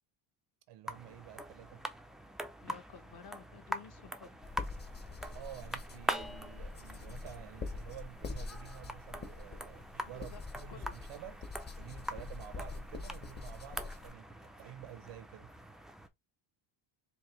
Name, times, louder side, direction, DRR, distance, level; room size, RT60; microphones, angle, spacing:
voice 1, 0.7-1.8 5.3-11.5 11.8-15.5, right 11 dB, 85° right, 0.9 m, -50 dB
sound 1, 0.9-16.1, equal, ahead, 0.3 m, -44 dB
voice 2, 2.6-4.4 10.0-10.4 10.7-11.0, left 7 dB, 50° left, 1.0 m, -52 dB
sound 2, 4.4-14.1, left 3 dB, 20° left, 0.7 m, -45 dB
4.6 x 2.7 x 3.1 m
cardioid pair, 115°, 49 cm